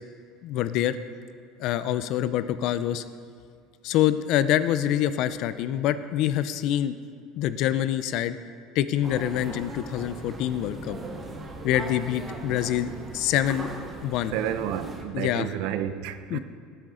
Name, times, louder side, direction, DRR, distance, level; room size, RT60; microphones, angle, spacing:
voice 1, 0.4-1.0 1.6-3.0 3.8-7.0 7.4-8.4 8.8-11.0 11.6-13.7 14.0-14.3 15.1-15.5 16.3-16.4, left 11 dB, 50° left, 0.5 m, -25 dB
sound 1, 9.0-15.0, right 2 dB, 20° right, 1.1 m, -39 dB
voice 2, 14.3-16.4, right 10 dB, 65° right, 0.6 m, -30 dB
17.0 x 9.4 x 3.8 m
cardioid pair, 160°, 0 cm